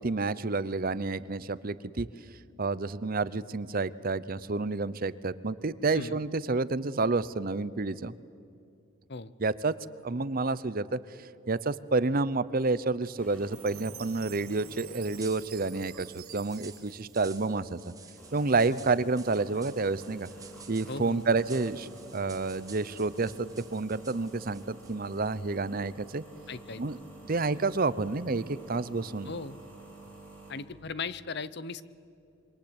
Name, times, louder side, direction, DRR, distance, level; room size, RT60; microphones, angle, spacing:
voice 1, 0.0-2.1 2.6-8.1 9.4-9.7 10.0-11.0 11.5-17.9 18.3-20.3 20.7-26.2 26.8-27.0 27.2-29.3, right 3 dB, 45° right, 17 dB, 0.7 m, -29 dB
sound 1, 13.2-30.8, right 2 dB, 10° left, 6.0 m, -51 dB
Chime, 13.5-17.9, right 15 dB, 90° right, 1.4 m, -49 dB
sound 2, 15.1-25.4, right 6 dB, 15° right, 2.2 m, -52 dB
voice 2, 20.9-21.2 26.5-26.8 29.3-29.6 30.5-31.8, left 4 dB, 50° left, 17 dB, 0.8 m, -38 dB
27.0 x 24.0 x 8.8 m, 2.5 s
head